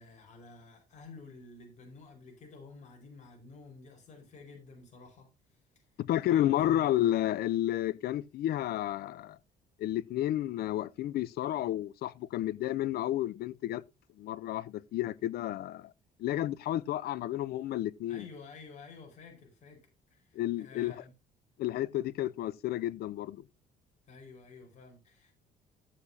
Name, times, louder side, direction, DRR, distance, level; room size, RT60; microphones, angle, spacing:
voice 1, 0.0-5.6 6.2-6.8 18.1-21.1 24.1-25.3, left 4 dB, 45° left, 4.8 m, -51 dB
voice 2, 6.0-9.4 9.8-13.8 14.2-15.9 16.2-18.2 20.4-21.0 21.6-23.4, left 13 dB, 65° left, 0.6 m, -31 dB
14.0 x 8.2 x 2.8 m
cardioid pair, 110°, 17 cm